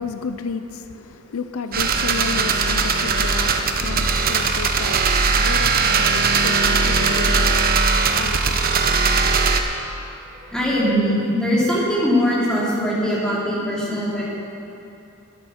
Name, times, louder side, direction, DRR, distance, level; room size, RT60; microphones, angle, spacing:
voice 1, 0.0-9.2, left 5 dB, 70° left, 0.5 m, -33 dB
sound 1, 1.7-9.6, right 4 dB, 45° right, 0.9 m, -19 dB
voice 2, 10.2-14.3, equal, 5° left, 3.0 m, -21 dB
12.0 x 10.5 x 6.4 m
head